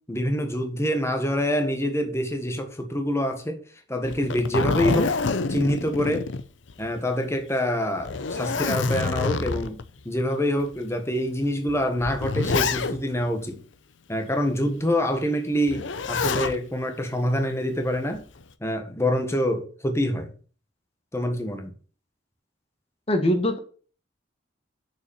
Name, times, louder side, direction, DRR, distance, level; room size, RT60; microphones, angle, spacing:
voice 1, 0.1-3.6 3.9-5.2 5.5-6.3 6.8-9.8 10.0-13.6 14.1-18.2 18.6-20.3 21.1-21.7, equal, 15° left, 1.4 m, -26 dB
Zipper (clothing), 4.1-7.0 7.3-7.4 8.0-9.8 10.6-10.7 11.7-13.2 15.7-16.6 17.9-18.4, left 4 dB, 75° left, 0.7 m, -27 dB
voice 2, 23.1-23.6, left 1 dB, 30° left, 1.7 m, -22 dB
7.0 x 6.1 x 7.0 m
head